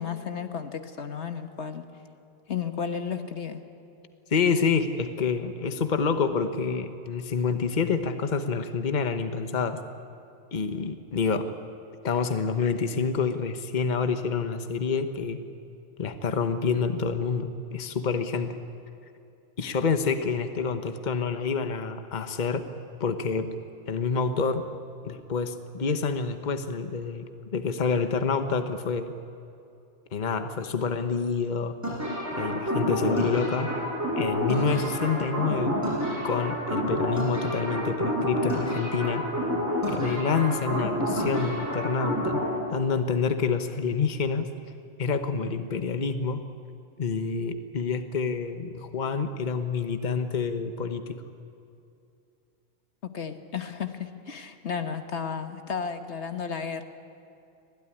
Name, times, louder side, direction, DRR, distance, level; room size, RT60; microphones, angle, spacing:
voice 1, 0.0-1.9 2.5-3.6 53.0-56.8, left 6 dB, 75° left, 8 dB, 1.5 m, -33 dB
voice 2, 4.3-9.8 10.5-11.5 12.0-15.4 16.0-18.6 19.6-22.6 23.0-23.5 23.9-24.6 25.0-29.1 30.1-31.8 32.4-33.7 34.2-35.8 36.2-39.2 39.9-42.4 42.7-44.5 45.0-46.4 47.0-51.2, left 5 dB, 45° left, 9 dB, 1.2 m, -27 dB
sound 1, 31.8-42.5, equal, 15° right, 7.9 m, -28 dB
25.0 x 17.5 x 10.0 m, 2.6 s
omnidirectional pair, 1.2 m